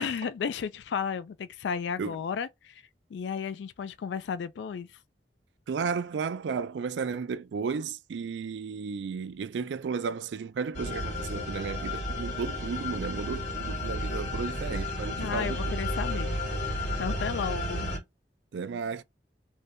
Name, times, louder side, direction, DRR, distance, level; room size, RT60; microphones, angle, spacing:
voice 1, 0.0-2.8 3.1-5.0 15.2-17.9, left 6 dB, 85° left, 0.3 m, -34 dB
voice 2, 5.7-15.6 18.5-19.0, right 5 dB, 85° right, 0.4 m, -33 dB
sound 1, 10.7-18.0, left 1 dB, 45° left, 1.5 m, -32 dB
2.7 x 2.6 x 3.2 m
head